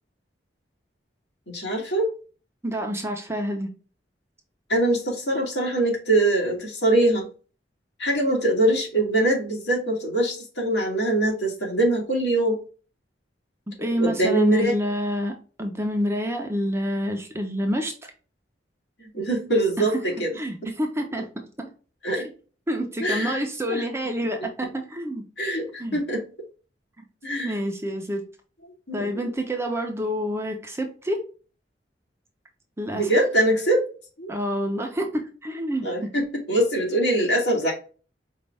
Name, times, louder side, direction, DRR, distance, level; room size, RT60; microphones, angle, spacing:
voice 1, 1.5-2.1 4.7-7.3 8.0-12.6 13.9-14.7 19.0-20.4 22.0-22.3 23.0-23.8 25.4-26.2 27.2-27.6 28.9-29.2 32.9-33.9 34.2-34.3 35.8-37.7, right 1 dB, 70° left, -1 dB, 2.3 m, -23 dB
voice 2, 2.6-3.7 13.8-18.1 20.3-21.3 21.6-21.7 22.7-25.2 25.8-26.0 27.0-27.1 27.4-28.2 28.9-31.2 32.8-33.1 34.3-35.9, equal, 15° right, 3 dB, 0.8 m, -28 dB
5.3 x 2.6 x 3.3 m, 0.37 s
head